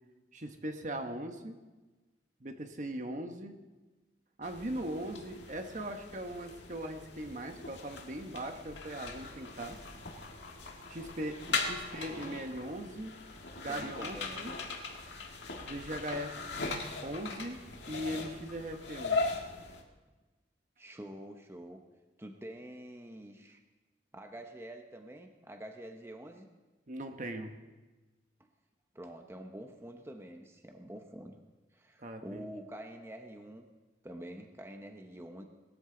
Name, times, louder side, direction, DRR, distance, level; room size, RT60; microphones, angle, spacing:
voice 1, 0.3-1.6 2.4-3.5 4.4-9.8 10.9-13.1 13.6-14.5 15.6-17.6 17.9-19.3 26.9-27.5 32.0-32.4, right 1 dB, 45° right, 5 dB, 1.0 m, -40 dB
sound 1, 4.4-19.8, left 3 dB, 85° left, 1.8 m, -39 dB
voice 2, 13.7-14.5 20.8-21.8 22.2-23.6 24.1-26.5 28.4-28.5 28.9-31.4 31.7-33.7 34.0-35.4, right 1 dB, 15° right, 4 dB, 0.9 m, -47 dB
20.0 x 13.5 x 3.9 m, 1.2 s
head